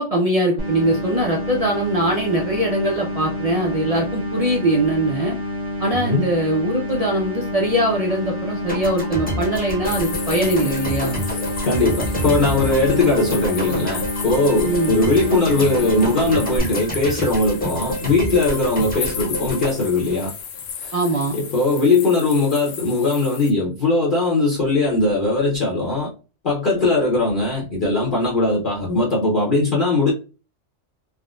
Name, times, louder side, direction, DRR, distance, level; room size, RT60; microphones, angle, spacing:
voice 1, 0.0-5.4 5.8-11.2 14.6-14.9 20.9-21.3, right 1 dB, 60° right, 0.4 m, -21 dB
sound 1, 0.6-16.6, left 1 dB, 25° right, 0.7 m, -28 dB
voice 2, 5.9-6.3 11.6-20.3 20.8-20.9 21.3-26.1 26.4-30.1, left 2 dB, 45° left, 0.9 m, -20 dB
sound 2, 8.7-20.9, right 1 dB, 10° left, 0.8 m, -29 dB
sound 3, 9.9-23.5, left 7 dB, 75° left, 0.9 m, -34 dB
3.6 x 2.1 x 2.3 m
omnidirectional pair, 1.3 m